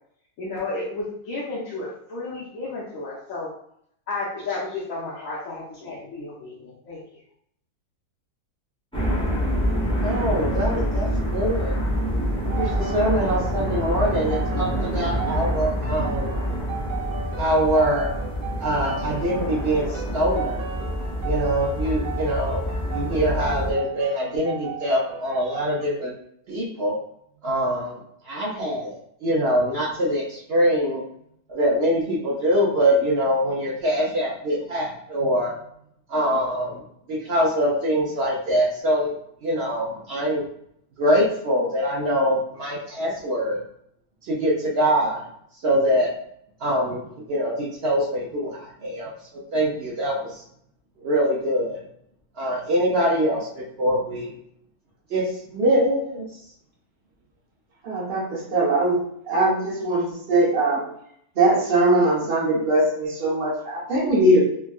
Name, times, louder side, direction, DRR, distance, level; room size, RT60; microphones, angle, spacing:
voice 1, 0.4-3.5 4.1-7.0, left 3 dB, 65° left, -7 dB, 1.1 m, -32 dB
sound 1, 8.9-23.7, equal, 5° left, 0.5 m, -26 dB
voice 2, 10.0-11.7 12.6-16.3 17.4-18.1 18.6-20.6 21.2-26.1 26.5-26.9 27.4-27.9 28.2-31.0 31.5-35.5 36.1-36.8 37.1-39.1 39.4-40.4 41.0-43.6 44.3-45.2 45.6-46.1 46.6-47.0 47.3-48.5 48.8-49.1 49.5-50.4 51.0-51.8 52.4-54.3 55.1-56.3, equal, 60° right, -4 dB, 0.6 m, -23 dB
sound 2, 12.5-25.8, right 6 dB, 85° right, 1.3 m, -36 dB
voice 3, 57.8-60.9 61.3-64.4, right 1 dB, 45° right, -6 dB, 1.1 m, -21 dB
3.5 x 2.2 x 2.3 m, 0.70 s
omnidirectional pair, 1.6 m